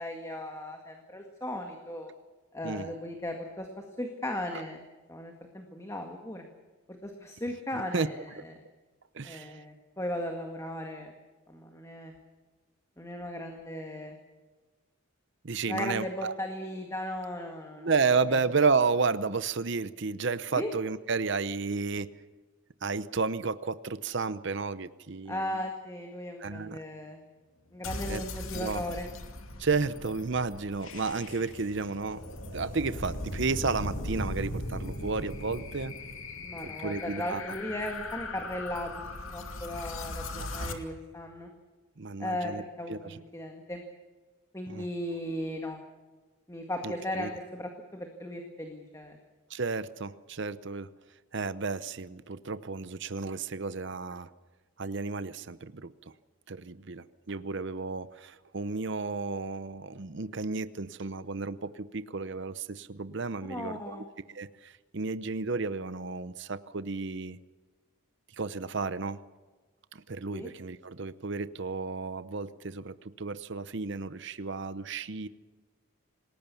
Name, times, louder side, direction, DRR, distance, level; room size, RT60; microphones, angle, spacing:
voice 1, 0.0-2.1 2.5-3.7 4.0-4.8 5.1-6.4 7.0-8.5 9.2-11.1 11.5-12.1 13.0-14.2 15.7-17.9 18.3-18.4 20.5-20.7 25.3-27.2 27.7-29.1 36.4-41.5 42.2-43.8 44.5-45.8 46.5-49.2 63.4-64.1 70.3-70.5, left 1 dB, 15° left, 3 dB, 1.9 m, -37 dB
voice 2, 9.1-9.6 15.4-16.3 17.8-22.1 22.8-25.4 26.4-26.8 28.1-28.2 28.5-28.8 29.6-32.2 32.5-35.9 36.8-37.4 40.3-40.8 42.0-42.6 42.9-43.2 44.7-44.8 45.5-45.6 46.8-47.3 49.5-50.9 51.3-54.3 54.8-55.9 56.5-67.4 68.4-69.2 69.9-75.3, right 4 dB, 55° right, 14 dB, 0.8 m, -32 dB
sound 1, 27.8-40.7, left 1 dB, 70° left, 2.5 m, -39 dB
27.5 x 19.5 x 7.0 m, 1.3 s
head